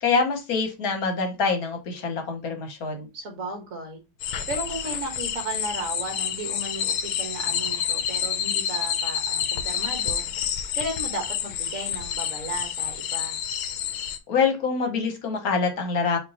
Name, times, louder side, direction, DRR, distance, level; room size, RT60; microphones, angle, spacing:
voice 1, 0.0-3.1 14.3-16.2, left 5 dB, 55° left, 1.3 m, -25 dB
voice 2, 3.1-4.0 4.5-10.2 10.7-13.4, right 2 dB, 45° right, 1.6 m, -34 dB
sound 1, 4.2-14.2, left 9 dB, 85° left, 1.4 m, -29 dB
5.1 x 3.1 x 2.9 m
omnidirectional pair, 2.1 m